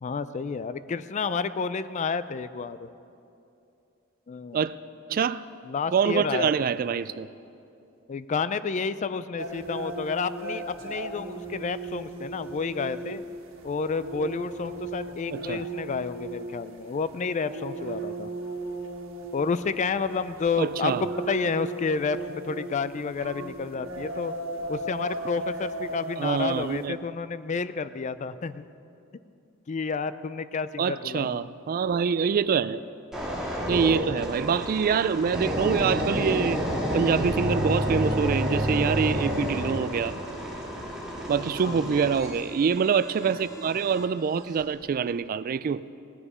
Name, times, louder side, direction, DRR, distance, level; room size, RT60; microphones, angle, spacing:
voice 1, 0.0-2.9 4.3-4.6 5.6-6.5 8.1-13.2 13.6-18.3 19.3-24.3 24.7-28.7 29.7-31.5 41.6-42.1, left 5 dB, 35° left, 0.4 m, -30 dB
voice 2, 5.1-5.4 5.9-7.3 15.3-15.6 20.6-21.0 26.2-27.0 30.8-32.8 33.7-36.6 36.9-40.2 41.3-45.8, right 6 dB, 45° right, 0.3 m, -25 dB
sound 1, 9.4-26.8, right 2 dB, 85° right, 1.6 m, -37 dB
sound 2, 33.1-44.1 44.6-44.8, equal, 5° right, 2.0 m, -30 dB
17.5 x 9.8 x 5.5 m
head